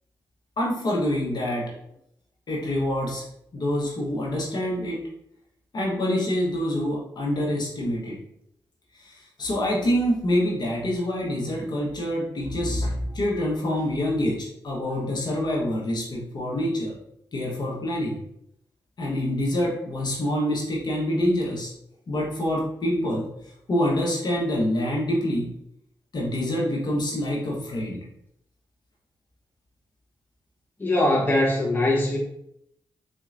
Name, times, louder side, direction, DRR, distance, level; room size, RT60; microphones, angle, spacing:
voice 1, 0.6-1.7 2.5-3.2 3.5-5.0 5.7-8.2 8.9-16.9 17.3-18.2 19.0-21.7 22.1-23.3 23.7-25.5 26.1-28.0, left 1 dB, 55° left, -4 dB, 1.1 m, -26 dB
voice 2, 30.8-32.2, left 1 dB, 20° left, -4 dB, 1.1 m, -21 dB
4.3 x 2.7 x 2.5 m, 0.76 s
cardioid pair, 65°, 9 cm